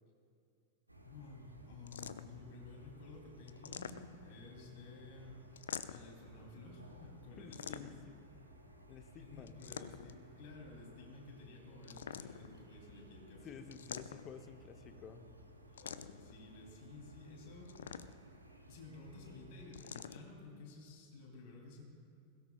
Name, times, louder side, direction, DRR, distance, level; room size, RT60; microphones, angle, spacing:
sound 1, 0.9-19.7, right 1 dB, 85° right, 1.1 m, -59 dB
voice 1, 1.0-5.4 5.9-8.0 9.2-13.7 14.7-15.0 15.7-17.7 18.7-21.8, left 3 dB, 50° left, 0 dB, 3.4 m, -53 dB
sound 2, 1.9-2.5 3.5-4.4 5.6-6.2 7.5-8.2 9.5-10.2 11.8-12.6 13.7-14.5 15.8-16.3 17.7-18.4 19.7-20.2, left 8 dB, 65° left, 0.4 m, -46 dB
voice 2, 7.4-8.2 8.9-9.6 13.4-15.2, left 6 dB, 30° left, 8 dB, 0.9 m, -52 dB
21.0 x 17.5 x 2.5 m, 2.6 s
figure-of-eight pair, 90°, 0 cm